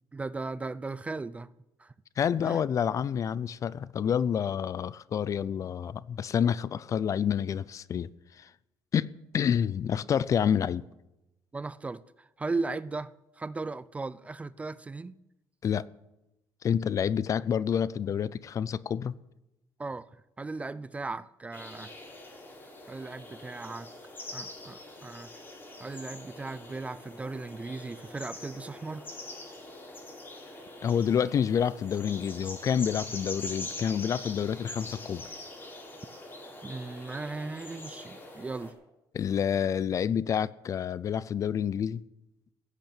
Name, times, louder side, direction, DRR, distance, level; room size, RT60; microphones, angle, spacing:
voice 1, 0.1-1.5 1.8-1.9 2.4-2.6 11.5-15.2 19.8-20.1 20.4-21.9 22.9-23.9 24.3-25.3 25.8-29.1 36.6-38.7, right 3 dB, 15° right, 0.4 m, -37 dB
voice 2, 2.2-8.1 8.4-8.5 8.9-9.1 9.3-10.8 15.6-15.9 16.6-19.1 30.8-35.2 39.1-42.0, left 8 dB, 40° left, 0.5 m, -28 dB
sound 1, 21.5-38.7, left 2 dB, 25° left, 4.7 m, -44 dB
16.0 x 8.3 x 8.9 m
cardioid pair, 130°, 8 cm